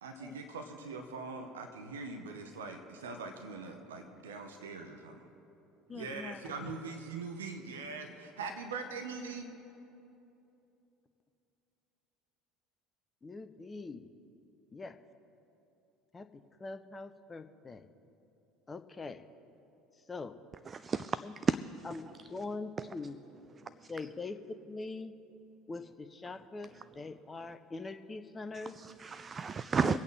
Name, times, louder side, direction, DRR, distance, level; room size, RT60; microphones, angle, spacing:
voice 1, 0.0-5.3 5.9-9.5, right 4 dB, 75° right, 0.9 m, -42 dB
voice 2, 5.9-6.4 13.2-14.1 14.7-15.0 16.1-16.3 16.6-17.9 18.7-19.2 20.1-20.3 21.2-21.3 21.8-22.0 22.3-23.2 23.9-25.1 25.7-26.7 27.0-28.8 29.8-30.0, left 3 dB, 20° left, 0.7 m, -42 dB
voice 3, 20.7-21.6 22.8-22.9 28.5-30.0, right 6 dB, 30° right, 0.3 m, -32 dB
24.0 x 8.4 x 3.3 m
figure-of-eight pair, 65°, 0 cm